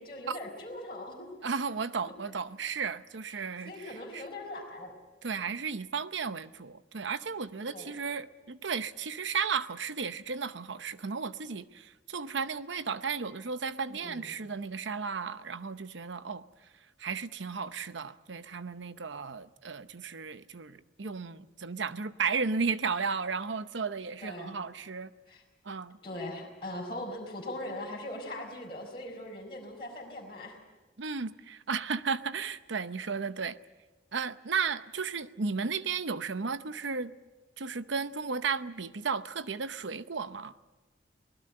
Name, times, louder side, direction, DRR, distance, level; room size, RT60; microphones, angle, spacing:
voice 1, 0.0-1.5 3.6-4.9 7.7-7.9 13.9-14.4 24.2-24.6 25.3-25.4 26.0-30.6, left 1 dB, 25° left, 4.4 m, -40 dB
voice 2, 1.4-4.2 5.2-16.4 17.0-25.1 25.6-26.0 31.0-33.6 34.1-37.1 37.6-40.5, right 5 dB, 80° right, 0.8 m, -34 dB
24.5 x 20.0 x 7.9 m
head